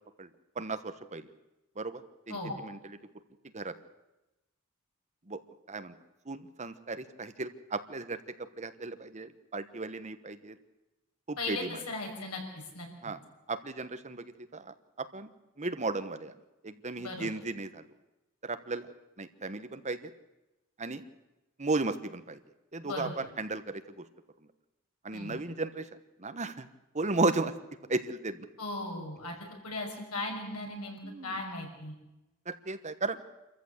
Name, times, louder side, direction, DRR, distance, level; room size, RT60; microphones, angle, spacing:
voice 1, 0.6-1.3 1.8-2.8 3.5-3.7 5.3-5.4 5.7-5.9 6.3-10.5 11.3-11.8 13.0-13.2 13.5-15.3 15.6-16.3 16.6-17.9 18.4-18.9 19.2-20.1 20.8-21.0 21.6-22.4 22.7-24.0 25.0-25.9 26.2-26.7 26.9-27.5 27.9-28.5 31.0-31.4 32.5-33.2, right 3 dB, 35° right, 10 dB, 1.2 m, -35 dB
voice 2, 11.4-12.4 12.7-12.9 17.0-17.3 22.8-23.1 25.1-25.4 28.6-29.3 29.6-31.9, left 2 dB, 90° left, 2 dB, 6.0 m, -37 dB
27.0 x 14.5 x 8.1 m, 0.99 s
head